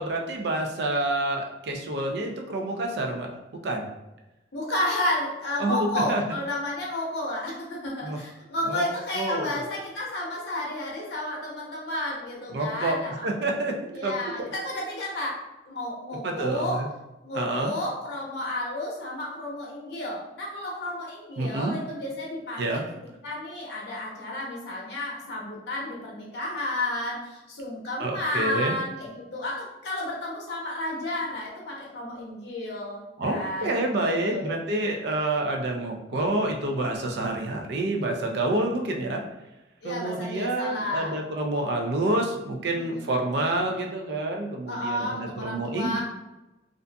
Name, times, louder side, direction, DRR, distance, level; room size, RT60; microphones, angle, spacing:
voice 1, 0.0-3.3 3.6-3.9 5.6-6.2 8.0-8.2 8.7-8.8 9.1-9.6 12.5-13.0 13.2-13.8 14.0-14.1 16.2-16.9 17.3-17.7 21.4-21.7 22.6-22.8 28.0-28.7 33.2-39.2 39.8-46.0, right 2 dB, 65° right, 2 dB, 0.4 m, -28 dB
voice 2, 4.5-13.1 13.9-15.4 15.7-16.8 17.2-22.8 23.2-34.6 38.8-39.0 39.8-41.1 42.7-43.0 44.7-46.0, left 1 dB, 65° left, -3 dB, 0.7 m, -32 dB
2.5 x 2.4 x 2.2 m, 0.98 s
head